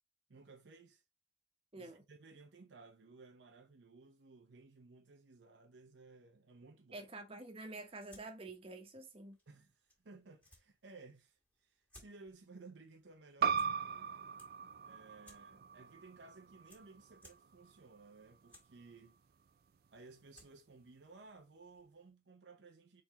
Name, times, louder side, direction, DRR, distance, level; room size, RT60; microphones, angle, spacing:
voice 1, 0.3-1.0 1.7-7.1 9.5-13.8 14.8-19.2 19.9-23.0, right 3 dB, 75° right, 0.7 m, -58 dB
voice 2, 1.7-2.0 6.9-9.4, right 2 dB, 30° right, 1.1 m, -48 dB
sound 1, 7.7-22.1, left 1 dB, 10° left, 1.7 m, -68 dB
sound 2, 13.4-18.6, right 6 dB, 55° right, 0.3 m, -39 dB
4.3 x 3.8 x 2.9 m
head